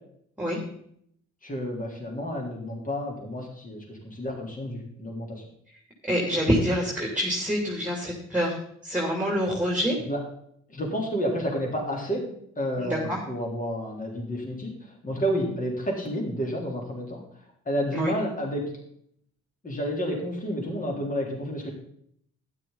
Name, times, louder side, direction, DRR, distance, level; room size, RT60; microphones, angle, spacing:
voice 1, 1.4-5.4 10.1-10.2 10.7-12.3 12.6-17.2 17.7-18.7 19.6-21.7, equal, 25° left, 0 dB, 3.8 m, -30 dB
voice 2, 6.1-8.6 8.8-10.0 12.8-13.2 17.9-18.1, equal, 5° right, -1 dB, 3.1 m, -26 dB
12.0 x 10.5 x 4.0 m, 0.68 s
cardioid pair, 90°, 30 cm